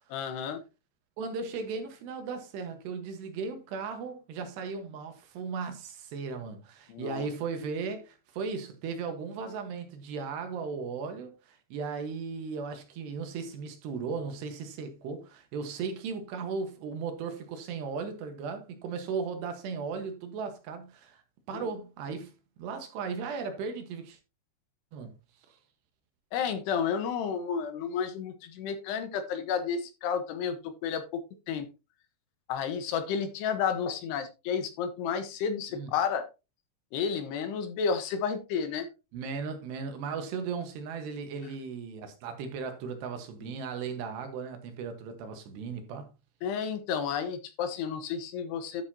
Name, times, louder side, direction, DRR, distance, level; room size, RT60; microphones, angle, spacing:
voice 1, 0.1-0.6 6.9-7.3 21.5-21.7 26.3-31.7 32.5-36.3 36.9-38.9 46.4-48.8, left 7 dB, 75° left, 3.2 m, -31 dB
voice 2, 1.2-21.2 21.5-22.3 22.6-24.2 24.9-25.1 35.7-35.9 39.1-46.1, right 5 dB, 75° right, 3.5 m, -36 dB
12.0 x 6.8 x 2.8 m
omnidirectional pair, 5.0 m